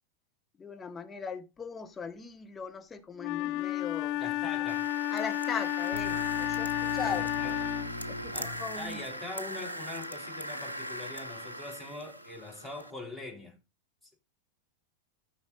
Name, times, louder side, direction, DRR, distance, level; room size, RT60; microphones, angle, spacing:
voice 1, 0.6-4.2 5.1-7.3 8.1-9.0, left 5 dB, 15° left, 1.4 m, -39 dB
Wind instrument woodwind instrument, 3.2-8.0, left 15 dB, 45° left, 0.5 m, -32 dB
voice 2, 4.2-4.9 7.0-7.7 8.3-13.6 14.0-14.1, left 2 dB, ahead, 4.0 m, -43 dB
sound 1, 4.7-12.9, equal, 85° right, 0.9 m, -40 dB
sound 2, 5.9-9.8, left 3 dB, 90° left, 1.4 m, -42 dB
12.5 x 5.8 x 4.1 m
figure-of-eight pair, 90°, 0 cm